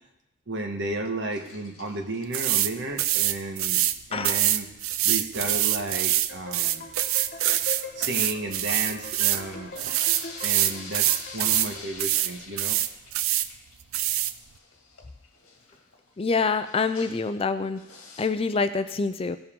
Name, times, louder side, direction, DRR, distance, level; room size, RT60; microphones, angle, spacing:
voice 1, 0.5-3.8 4.1-4.7 5.0-6.9 7.9-9.9 10.4-12.8, right 2 dB, 55° right, 3 dB, 1.4 m, -33 dB
sound 1, 1.3-2.5 3.7-4.2 4.5-4.6 4.9-5.0 5.6-6.2 6.7-8.6 9.1-17.4 17.8-18.3, left 4 dB, 80° left, 1.9 m, -46 dB
sound 2, 2.3-2.7 3.0-4.0 4.2-9.4 9.8-11.7 12.0-12.3 12.6-13.5 13.9-14.3, right 13 dB, 75° right, 0.4 m, -24 dB
sound 3, 6.3-11.8, left 3 dB, 45° left, 0.9 m, -42 dB
voice 2, 16.2-17.8 18.2-19.4, left 4 dB, 25° left, 11 dB, 0.4 m, -26 dB
17.0 x 7.1 x 3.7 m, 0.83 s
head